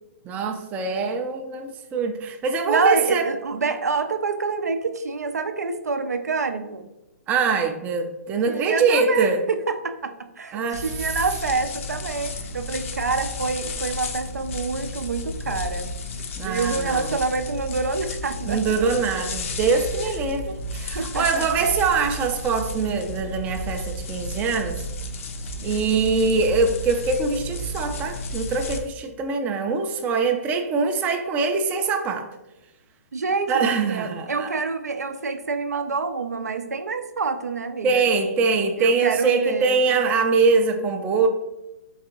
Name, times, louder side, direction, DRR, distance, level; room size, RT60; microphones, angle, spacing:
voice 1, 0.2-3.3 7.3-9.4 10.5-10.9 16.4-17.1 18.5-24.8 25.6-32.3 33.5-34.5 37.8-41.3, right 4 dB, 20° right, 5 dB, 0.3 m, -23 dB
voice 2, 2.6-6.9 8.5-15.9 16.4-18.9 20.1-20.5 20.9-21.5 33.1-33.6 33.9-38.0 38.8-39.8, right 4 dB, 90° right, 8 dB, 0.4 m, -27 dB
sound 1, 10.7-28.8, left 1 dB, 55° left, 0.5 m, -32 dB
3.9 x 3.4 x 2.8 m, 0.97 s
hypercardioid pair, 135°, 8 cm